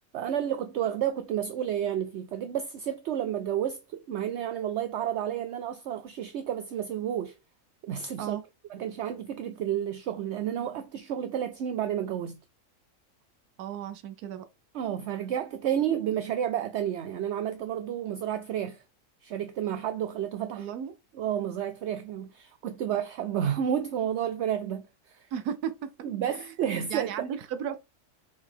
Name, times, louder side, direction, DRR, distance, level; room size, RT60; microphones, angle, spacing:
voice 1, 0.1-7.4 7.8-8.4 8.7-12.4 14.7-18.8 19.2-20.7 21.2-25.3 26.0-27.1, right 10 dB, 65° right, 0.7 m, -31 dB
voice 2, 13.6-14.4 20.6-20.9 25.3-25.9 26.3-26.5 26.9-27.8, right 8 dB, 90° right, 1.2 m, -34 dB
5.9 x 4.0 x 4.5 m
omnidirectional pair, 1.6 m